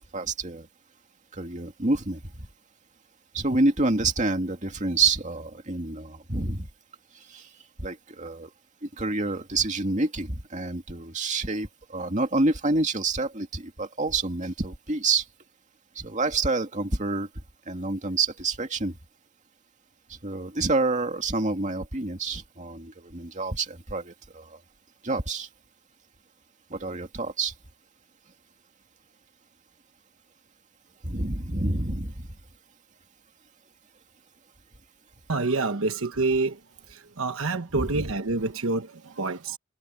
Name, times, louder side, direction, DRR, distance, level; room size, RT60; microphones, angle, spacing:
voice 1, 0.1-0.7 1.3-2.5 3.3-6.7 7.1-7.5 7.8-8.5 8.8-15.3 16.0-17.3 17.7-19.0 20.1-24.6 25.0-25.5 26.7-27.5 31.0-32.3 37.7-38.1, right 3 dB, 35° right, 2.4 m, -28 dB
voice 2, 35.3-36.6 36.9-39.6, right 3 dB, 75° right, 1.1 m, -27 dB
head